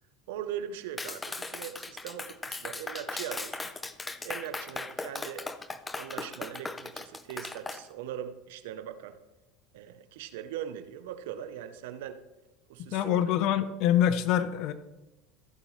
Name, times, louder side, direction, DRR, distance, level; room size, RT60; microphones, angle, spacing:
voice 1, 0.3-3.7 4.2-5.5 6.0-9.2 9.7-12.2 12.7-13.1, right 10 dB, 80° right, 11 dB, 0.8 m, -40 dB
Clapping, 1.0-7.8, left 3 dB, 15° left, 0.6 m, -38 dB
voice 2, 12.9-14.7, left 10 dB, 60° left, 13 dB, 0.7 m, -25 dB
14.5 x 6.9 x 3.2 m, 1.0 s
supercardioid pair, 100°, 0 cm